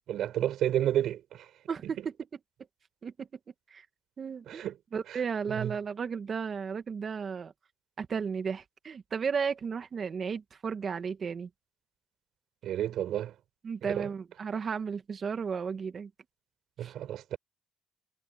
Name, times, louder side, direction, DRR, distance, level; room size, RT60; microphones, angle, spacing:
voice 1, 0.1-1.5 1.8-2.0 4.5-4.8 5.1-5.2 5.5-5.7 12.6-13.3 13.8-14.1 16.8-17.4, right 11 dB, 75° right, 6.7 m, -31 dB
voice 2, 1.7-2.1 3.0-3.3 3.7-3.9 4.2-4.6 4.9-7.5 8.0-11.5 13.6-16.1 16.8-16.9, right 6 dB, 45° right, 2.0 m, -34 dB
cardioid pair, 90°, 0 cm